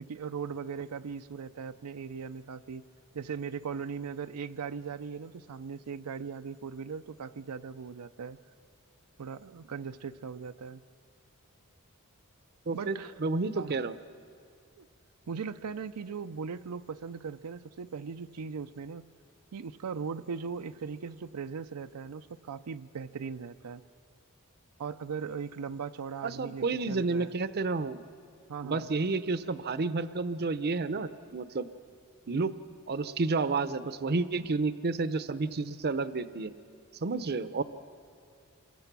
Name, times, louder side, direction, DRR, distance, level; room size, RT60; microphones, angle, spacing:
voice 1, 0.0-2.8 3.1-8.4 9.2-10.8 12.7-13.2 13.5-13.8 14.8-14.9 15.3-19.1 19.5-23.8 24.8-27.3 28.5-28.9, right 6 dB, 85° right, 9 dB, 0.5 m, -39 dB
voice 2, 12.7-13.9 26.2-28.0 28.6-31.7 32.3-32.5 32.9-36.5 37.0-37.6, right 3 dB, 45° right, 13 dB, 0.6 m, -30 dB
27.5 x 22.5 x 6.1 m, 2.3 s
head